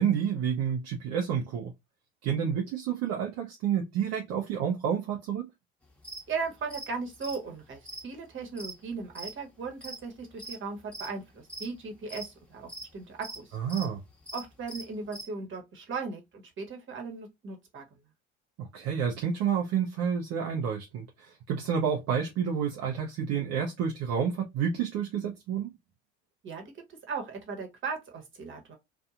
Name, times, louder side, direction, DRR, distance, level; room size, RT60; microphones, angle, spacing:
voice 1, 0.0-1.7 2.2-5.5 13.5-14.0 18.6-25.7, right 7 dB, 55° right, 0.7 m, -29 dB
sound 1, 6.0-6.2 6.7-6.9 7.2-9.3 9.7-10.6 10.9-11.1 11.5-12.3 12.7-12.9 13.2-13.9 14.2-15.3, right 1 dB, 5° left, 1.2 m, -41 dB
voice 2, 6.3-13.6 14.3-18.0 26.4-28.8, right 4 dB, 40° right, 1.3 m, -37 dB
2.7 x 2.5 x 2.4 m
hypercardioid pair, 70°, 30 cm